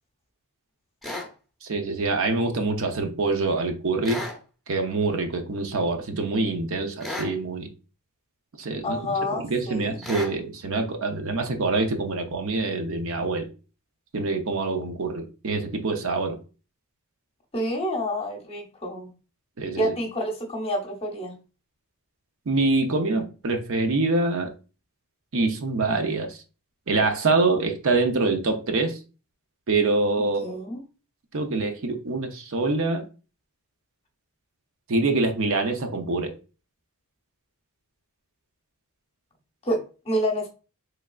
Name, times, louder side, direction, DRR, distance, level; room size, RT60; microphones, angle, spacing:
sound 1, 1.0-1.3 4.0-4.4 7.0-7.3 10.0-10.3, left 1 dB, ahead, 0.8 m, -33 dB
voice 1, 1.6-4.2 4.7-7.7 8.6-9.0 9.4-13.5 14.1-16.4 19.6-19.9 22.5-24.5 25.3-26.4 26.9-29.0 29.7-30.5 31.3-33.0 34.9-36.3, right 3 dB, 60° right, 0.6 m, -25 dB
voice 2, 8.8-10.1 17.5-19.1 19.8-21.3 30.2-30.8 39.6-40.5, equal, 25° left, 0.8 m, -28 dB
3.5 x 3.3 x 2.3 m
head